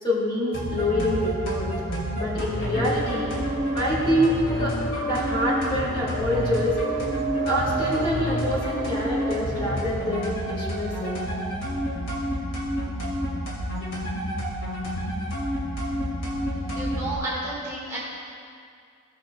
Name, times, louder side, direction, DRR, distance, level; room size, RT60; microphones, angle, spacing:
voice 1, 0.0-1.7 2.1-3.3 3.7-4.8 5.0-6.8 7.4-11.2, left 1 dB, 25° left, -7 dB, 2.3 m, -26 dB
sound 1, 0.5-17.2, equal, 55° left, 1.9 m, -29 dB
sound 2, 2.7-11.9, right 5 dB, 65° right, 1.2 m, -35 dB
voice 2, 16.7-18.0, right 2 dB, 15° right, -8 dB, 1.6 m, -31 dB
17.0 x 6.5 x 2.3 m, 2.3 s
head